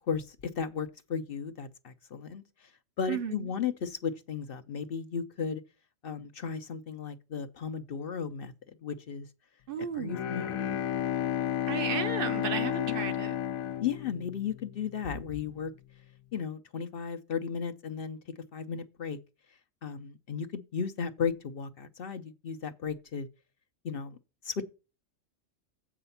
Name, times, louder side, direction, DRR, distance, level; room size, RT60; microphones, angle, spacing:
voice 1, 0.1-2.4 3.0-5.6 6.0-8.5 8.8-9.3 10.0-10.8 12.7-12.9 13.8-15.7 16.3-18.2 18.5-19.2 19.8-23.3 23.8-24.2 24.4-24.6, left 6 dB, 55° left, 0.7 m, -35 dB
voice 2, 3.1-3.5 9.7-10.2 11.7-13.4, right 7 dB, 50° right, 0.8 m, -34 dB
Bowed string instrument, 10.0-14.9, left 11 dB, 85° left, 1.1 m, -32 dB
7.8 x 4.9 x 5.6 m
omnidirectional pair, 1.4 m